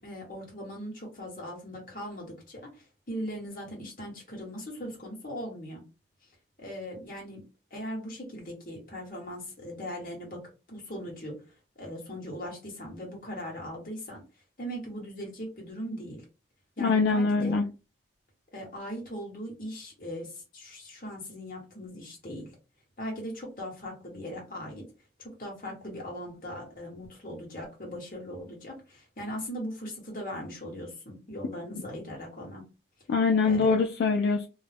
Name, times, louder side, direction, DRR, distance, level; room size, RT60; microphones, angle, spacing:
voice 1, 0.0-5.8 6.6-7.4 7.7-10.4 10.7-11.4 11.8-14.2 14.6-16.2 16.8-17.7 18.5-22.5 23.0-24.8 25.2-32.6 33.4-33.7, equal, 50° left, 1.1 m, -39 dB
voice 2, 16.8-17.6 33.1-34.5, left 4 dB, 75° left, 0.3 m, -23 dB
2.3 x 2.0 x 3.3 m
head